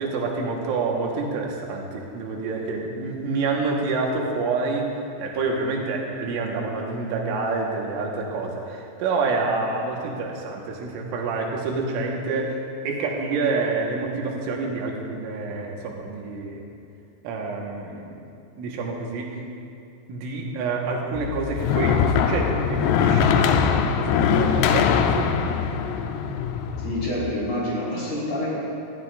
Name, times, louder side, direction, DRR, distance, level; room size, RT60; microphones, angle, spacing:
voice 1, 0.0-16.7 17.2-18.2 18.6-19.4 20.1-23.8 24.1-25.3, right 3 dB, 85° right, -1 dB, 3.8 m, -28 dB
sound 1, 21.2-27.3, left 7 dB, 85° left, 2.4 m, -22 dB
voice 2, 26.8-28.5, left 1 dB, 35° left, -7 dB, 4.6 m, -28 dB
19.5 x 14.5 x 2.5 m, 2.5 s
omnidirectional pair, 5.5 m